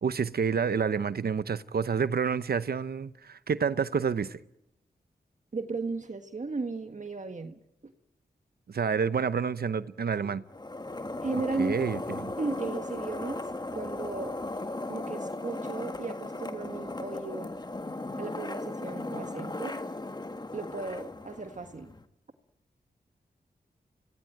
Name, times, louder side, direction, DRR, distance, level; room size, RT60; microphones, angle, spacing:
voice 1, 0.0-4.4 8.7-10.4 11.6-12.3, right 6 dB, 70° right, 0.8 m, -29 dB
voice 2, 5.5-7.6 11.2-11.9 12.4-13.5 13.7-14.4 14.9-17.5 18.2-19.8 20.5-21.9, right 3 dB, 50° right, 1.7 m, -35 dB
sound 1, 10.5-22.0, left 2 dB, 25° left, 1.7 m, -37 dB
25.5 x 19.0 x 9.1 m
wide cardioid pair, 70°, 17 cm